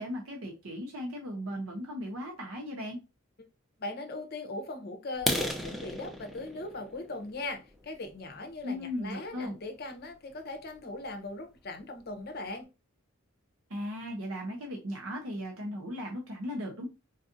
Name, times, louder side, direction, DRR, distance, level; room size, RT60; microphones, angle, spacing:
voice 1, 0.0-3.0 8.6-9.6 13.7-16.9, equal, 75° right, 0.7 m, -37 dB
voice 2, 3.8-12.7, left 2 dB, 45° left, 0.7 m, -39 dB
sound 1, 5.1-8.9 9.4-9.6 10.1-10.2 10.6-10.8 11.1-11.2 11.6-11.7 12.0-12.5, equal, ahead, 0.4 m, -36 dB
4.0 x 2.5 x 2.6 m
head